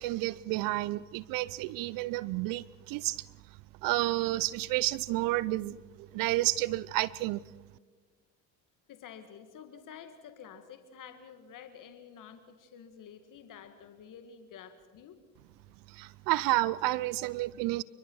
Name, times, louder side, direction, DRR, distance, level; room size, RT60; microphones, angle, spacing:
voice 1, 0.0-3.3 3.8-7.4 15.9-17.8, right 18 dB, 60° right, 21 dB, 0.6 m, -30 dB
voice 2, 8.9-15.2, left 7 dB, 55° left, 9 dB, 2.0 m, -50 dB
28.5 x 24.0 x 4.8 m, 1.4 s
hypercardioid pair, 70°, 39 cm